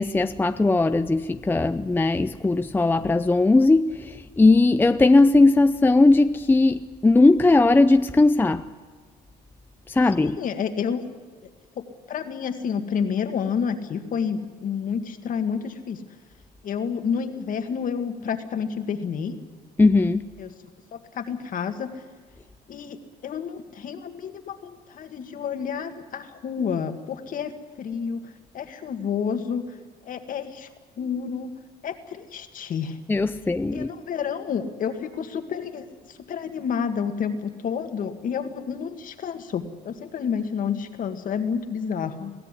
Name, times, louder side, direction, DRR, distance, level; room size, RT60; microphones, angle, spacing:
voice 1, 0.0-8.7 9.9-10.4 19.8-20.3 33.1-33.9, left 2 dB, 10° left, 0.5 m, -18 dB
voice 2, 10.2-11.1 11.8-16.0 16.6-19.4 20.4-20.5 20.9-21.9 22.7-27.5 27.8-28.2 28.5-29.7 30.0-30.7 31.0-31.5 31.8-33.0 33.7-42.3, left 7 dB, 55° left, 2.0 m, -29 dB
22.0 x 15.5 x 10.0 m
cardioid pair, 110°, 17 cm